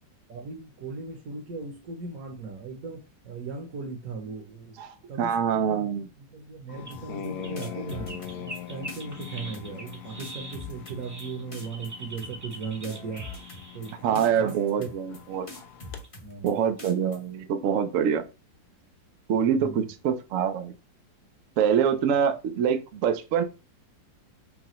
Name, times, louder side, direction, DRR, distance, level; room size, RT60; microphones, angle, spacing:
voice 1, 0.3-4.8 5.1-13.2 13.7-14.9 16.2-16.5 19.6-19.9, right 4 dB, 60° right, 1 dB, 1.1 m, -38 dB
voice 2, 4.8-6.1 14.0-15.5 16.4-18.2 19.3-20.7 21.6-23.4, right 8 dB, 90° right, 8 dB, 0.7 m, -25 dB
sound 1, 6.7-16.0, left 9 dB, 70° left, 1.0 m, -43 dB
sound 2, 6.9-7.3 7.6-8.6 8.9-9.3 9.5-9.9 10.2-11.2 11.5-11.9 12.2-12.5 12.8-13.9 14.1-14.5 14.8-15.2 15.5-16.5 16.8-17.2, left 3 dB, 30° left, 0.7 m, -43 dB
sound 3, 6.9-7.0 7.4-14.0 15.3-15.4 16.0-16.1 16.7-16.8, right 1 dB, 25° right, 0.4 m, -43 dB
5.7 x 2.2 x 3.0 m, 0.29 s
omnidirectional pair, 2.0 m